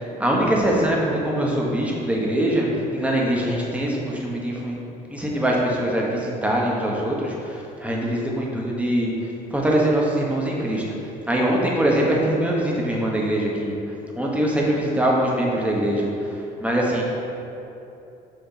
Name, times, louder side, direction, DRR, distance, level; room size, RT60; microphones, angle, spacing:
voice 1, 0.2-2.7 2.9-4.7 5.1-9.1 9.5-10.8 11.3-13.7 14.2-16.1 16.6-17.0, right 1 dB, 10° right, -3 dB, 1.2 m, -22 dB
6.8 x 3.4 x 5.8 m, 2.9 s
cardioid pair, 110°, 17 cm